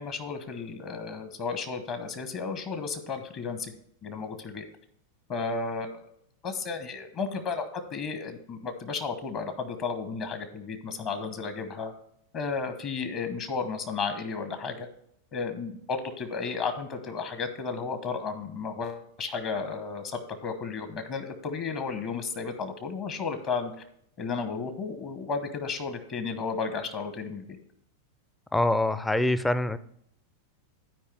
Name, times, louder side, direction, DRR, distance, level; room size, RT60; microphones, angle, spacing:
voice 1, 0.0-4.6 5.3-6.0 6.4-11.9 12.3-14.9 15.3-23.7 24.2-27.6, left 5 dB, 35° left, 8 dB, 1.0 m, -33 dB
voice 2, 28.5-29.8, left 1 dB, 5° left, 14 dB, 0.4 m, -24 dB
12.0 x 4.9 x 3.4 m, 0.70 s
figure-of-eight pair, 90°, 0 cm